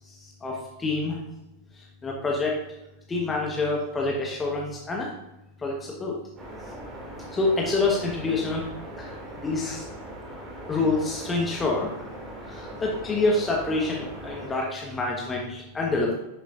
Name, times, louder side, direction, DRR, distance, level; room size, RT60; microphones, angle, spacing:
voice 1, 0.4-1.2 1.8-2.6 3.1-5.1 5.6-6.2 7.3-8.7 9.0-9.1 9.4-9.8 10.7-11.9 12.5-16.1, left 3 dB, 15° left, -2 dB, 1.2 m, -27 dB
sound 1, 6.4-14.5, right 1 dB, 20° right, 2.4 m, -40 dB
9.9 x 6.8 x 2.5 m, 0.96 s
figure-of-eight pair, 90°, 0 cm